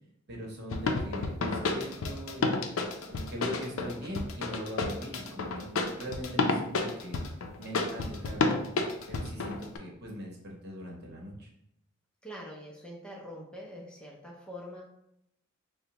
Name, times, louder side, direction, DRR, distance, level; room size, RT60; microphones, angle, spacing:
voice 1, 0.3-7.2 7.6-8.7 9.1-11.5, equal, 55° right, -2 dB, 0.9 m, -41 dB
sound 1, 0.7-9.8, left 3 dB, 85° left, 0.5 m, -30 dB
voice 2, 12.2-14.8, equal, 5° left, -3 dB, 0.5 m, -44 dB
4.8 x 2.1 x 2.8 m, 0.78 s
head